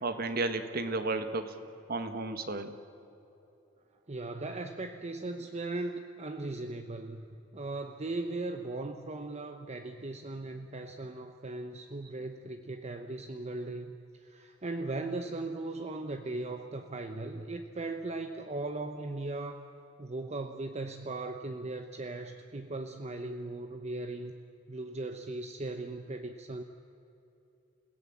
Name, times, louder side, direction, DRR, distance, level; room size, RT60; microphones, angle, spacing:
voice 1, 0.0-1.6 1.9-2.7, right 3 dB, 50° right, 9 dB, 1.6 m, -33 dB
voice 2, 4.1-7.3 7.5-13.9 14.2-19.6 20.0-24.3 24.7-26.6, right 2 dB, 35° right, 6 dB, 0.9 m, -38 dB
29.0 x 17.0 x 7.4 m, 2.9 s
head